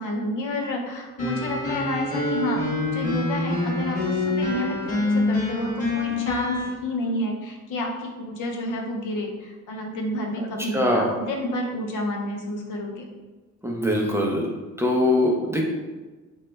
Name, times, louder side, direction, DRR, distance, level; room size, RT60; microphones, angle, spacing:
voice 1, 0.0-2.6 2.9-13.1, left 1 dB, 85° left, 1 dB, 0.6 m, -30 dB
sound 1, 1.2-6.7, left 2 dB, 25° left, 0.9 m, -26 dB
voice 2, 10.7-11.1 13.6-14.5 14.8-15.6, left 1 dB, 10° right, -1 dB, 0.4 m, -22 dB
2.9 x 2.2 x 3.2 m, 1.3 s
cardioid pair, 125°, 30 cm